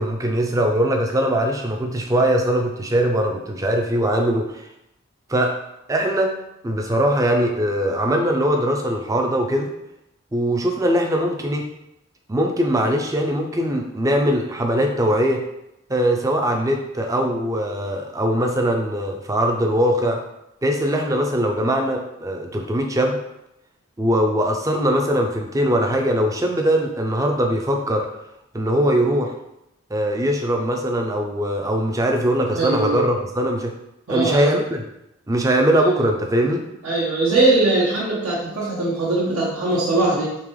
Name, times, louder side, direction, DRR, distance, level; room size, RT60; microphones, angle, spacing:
voice 1, 0.0-4.7 5.3-5.5 5.9-6.3 6.6-9.7 10.3-11.7 12.3-15.4 15.9-20.2 20.6-23.2 24.0-28.1 28.5-29.3 29.9-33.7 34.1-34.8 35.3-36.6, equal, 15° right, 3 dB, 0.4 m, -21 dB
voice 2, 32.5-33.0 34.1-34.5 36.8-40.4, right 2 dB, 85° right, -7 dB, 1.0 m, -20 dB
3.8 x 3.3 x 3.1 m, 0.85 s
head